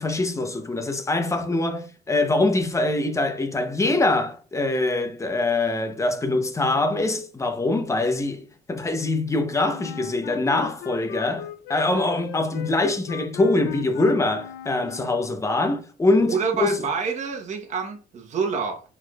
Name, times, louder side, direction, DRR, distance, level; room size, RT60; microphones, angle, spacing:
voice 1, 0.0-16.8, left 2 dB, 15° left, 0.8 m, -24 dB
Wind instrument woodwind instrument, 9.7-15.4, left 9 dB, 80° left, 0.5 m, -39 dB
voice 2, 16.2-18.8, right 5 dB, 45° right, 1.1 m, -27 dB
4.5 x 4.5 x 2.4 m
cardioid pair, 110°, 17 cm